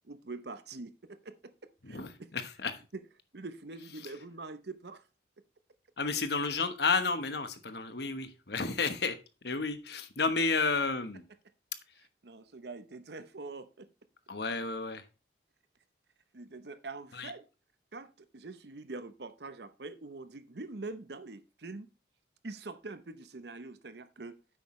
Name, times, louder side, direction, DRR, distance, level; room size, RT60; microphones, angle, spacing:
voice 1, 0.0-1.4 1.9-2.3 3.3-5.0 12.2-13.9 16.3-17.5 17.9-21.9 22.4-24.4, right 3 dB, 60° right, 12 dB, 0.8 m, -44 dB
voice 2, 1.8-2.8 4.0-4.1 6.0-9.2 9.4-11.2 14.3-15.0 17.1-17.3, left 4 dB, 60° left, 10 dB, 1.2 m, -32 dB
9.9 x 8.1 x 3.2 m, 0.30 s
head